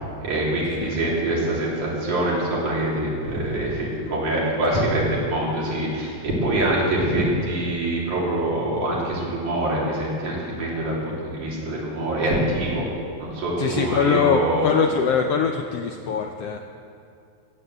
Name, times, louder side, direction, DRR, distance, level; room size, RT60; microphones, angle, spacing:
voice 1, 0.2-12.8 13.2-14.7, right 1 dB, 75° right, -5 dB, 4.9 m, -24 dB
voice 2, 13.6-16.6, left 6 dB, 80° left, 4 dB, 1.4 m, -23 dB
15.5 x 9.7 x 8.0 m, 2.5 s
omnidirectional pair, 3.5 m